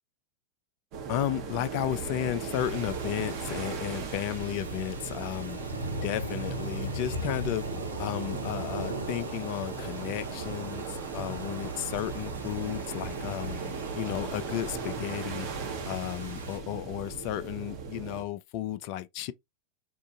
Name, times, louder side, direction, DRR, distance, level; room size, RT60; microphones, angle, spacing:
sound 1, 0.9-18.2, right 5 dB, 40° right, 1.0 m, -37 dB
voice 1, 1.1-5.6 6.0-7.6 8.0-13.6 14.0-15.5 15.9-19.3, left 12 dB, 45° left, 0.4 m, -33 dB
sound 2, 2.5-16.6, right 1 dB, 80° right, 0.8 m, -40 dB
4.5 x 2.5 x 2.3 m
figure-of-eight pair, 90°, 0 cm